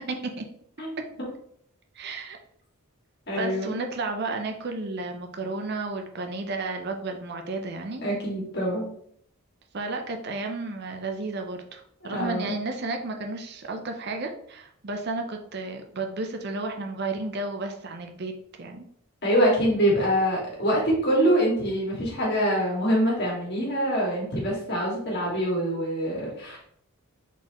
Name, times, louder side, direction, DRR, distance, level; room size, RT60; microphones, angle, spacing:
voice 1, 0.1-0.4 2.0-2.4 3.4-8.0 9.7-18.8, right 3 dB, 50° right, 4 dB, 0.5 m, -32 dB
voice 2, 3.3-3.7 8.0-8.9 12.1-12.6 19.2-26.6, equal, 50° left, -3 dB, 2.0 m, -25 dB
4.3 x 4.1 x 2.9 m, 0.66 s
head